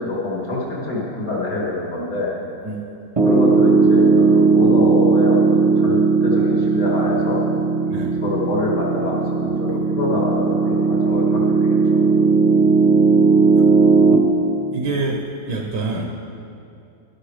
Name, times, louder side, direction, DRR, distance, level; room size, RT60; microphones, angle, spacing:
voice 1, 0.0-2.3 3.2-7.4 8.2-12.1, left 2 dB, 55° left, -4 dB, 2.9 m, -25 dB
Piano, 3.2-14.2, right 4 dB, 25° right, 0.9 m, -16 dB
voice 2, 14.7-16.1, right 3 dB, 70° right, 1 dB, 1.5 m, -26 dB
11.5 x 11.0 x 4.9 m, 2.6 s
omnidirectional pair, 1.9 m